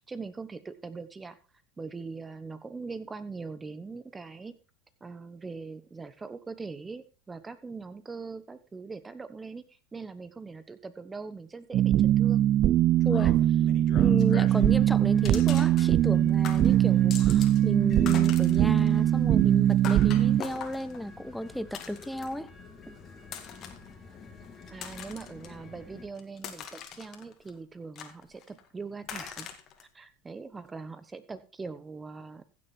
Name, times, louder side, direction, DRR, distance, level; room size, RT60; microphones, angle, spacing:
voice 1, 0.1-1.4 1.8-4.5 5.0-9.6 9.9-12.4 24.7-29.5 29.8-32.4, right 4 dB, 15° right, 1.2 m, -41 dB
sound 1, 11.7-20.4, right 12 dB, 45° right, 0.6 m, -22 dB
sound 2, 13.0-14.7 15.2-16.2 16.4-17.6 17.9-22.5 23.2-23.9 24.4-25.5 25.9-27.5 27.9-28.6 29.0-29.8, left 9 dB, 45° left, 2.1 m, -42 dB
voice 2, 13.0-13.4 14.0-22.5 22.9-23.0, equal, ahead, 0.7 m, -33 dB
sound 3, 14.4-26.1, left 4 dB, 30° left, 3.1 m, -49 dB
15.5 x 6.8 x 4.5 m
hypercardioid pair, 100°, 0 cm